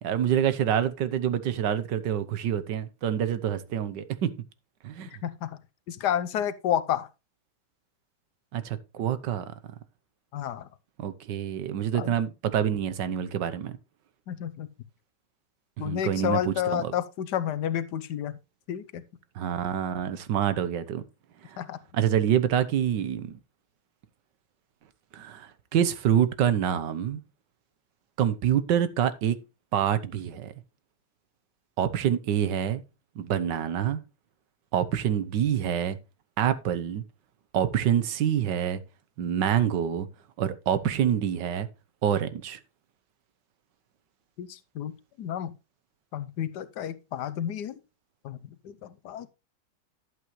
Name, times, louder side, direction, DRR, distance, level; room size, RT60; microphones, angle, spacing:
voice 1, 0.0-4.3 4.8-5.1 8.5-9.5 11.0-13.8 15.8-16.9 19.3-21.0 21.4-21.6 21.9-23.4 25.1-27.2 28.2-29.4 29.7-30.5 31.8-32.8 33.2-34.0 34.7-36.0 36.4-37.0 37.5-38.8 39.2-40.1 40.4-41.7 42.0-42.6, right 9 dB, 85° right, 1.6 m, -26 dB
voice 2, 5.9-7.1 10.3-10.7 12.0-12.1 14.3-14.7 15.8-18.3 18.7-19.0 21.6-21.8 44.4-45.5 46.1-47.8 48.2-48.4 48.6-49.3, left 10 dB, 75° left, 1.3 m, -30 dB
11.5 x 8.2 x 3.1 m
omnidirectional pair, 1.9 m